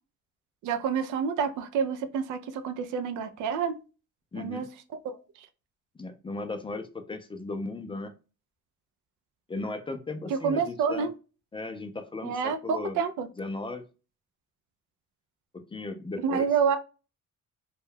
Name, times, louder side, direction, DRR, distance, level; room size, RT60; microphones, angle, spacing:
voice 1, 0.6-3.8 4.4-4.7 5.0-5.5 10.3-11.1 12.2-13.3 16.2-16.8, right 6 dB, 80° right, 0.5 m, -28 dB
voice 2, 4.3-4.7 6.0-8.1 9.5-11.1 11.5-13.0 13.4-13.8 15.5-16.5, left 3 dB, 20° left, 0.4 m, -36 dB
2.2 x 2.2 x 3.2 m
cardioid pair, 90°, 30 cm